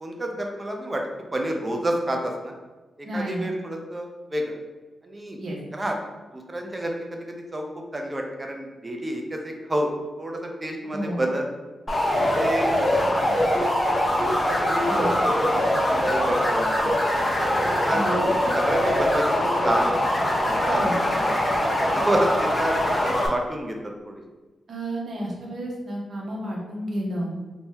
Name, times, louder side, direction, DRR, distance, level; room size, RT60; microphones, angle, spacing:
voice 1, 0.0-2.5 3.1-4.6 5.0-5.4 5.7-5.9 6.3-7.7 7.9-9.9 10.2-11.4 12.2-13.5 14.3-15.7 16.0-17.0 17.5-20.0 20.4-21.4 21.8-22.8 23.0-23.8 24.1-24.2, right 1 dB, 30° right, 2 dB, 0.6 m, -29 dB
voice 2, 3.0-3.5 5.4-5.6 10.9-11.2 14.9-15.1 17.9-18.2 20.7-21.0 24.7-27.3, right 1 dB, 65° right, -3 dB, 1.0 m, -31 dB
sound 1, 11.9-23.3, left 1 dB, 30° left, 0.8 m, -23 dB
2.8 x 2.7 x 3.7 m, 1.2 s
cardioid pair, 60°, 0 cm